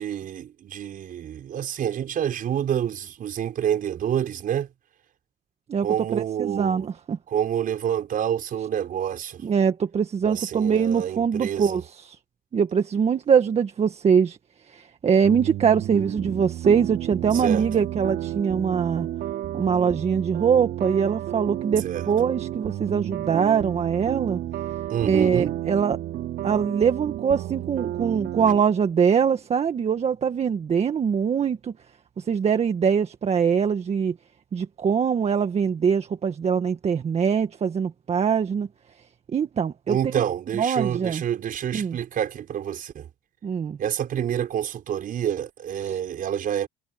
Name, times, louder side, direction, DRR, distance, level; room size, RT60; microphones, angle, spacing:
voice 1, 0.0-4.7 5.8-6.9 7.3-9.4 10.2-11.8 17.3-17.7 21.8-22.0 24.9-25.6 39.9-43.1 43.8-46.7, right 9 dB, 55° right, 5.2 m, -28 dB
voice 2, 6.1-7.2 9.4-12.2 12.5-14.4 14.7-19.1 19.5-24.4 25.0-26.0 26.4-31.7 32.2-34.1 34.5-38.7 39.3-40.2 40.5-41.2 41.7-42.0 43.4-43.8 45.8-46.0, right 7 dB, 40° right, 1.6 m, -23 dB
sound 1, 15.2-28.6, right 13 dB, 70° right, 2.6 m, -32 dB
cardioid pair, 110°, 17 cm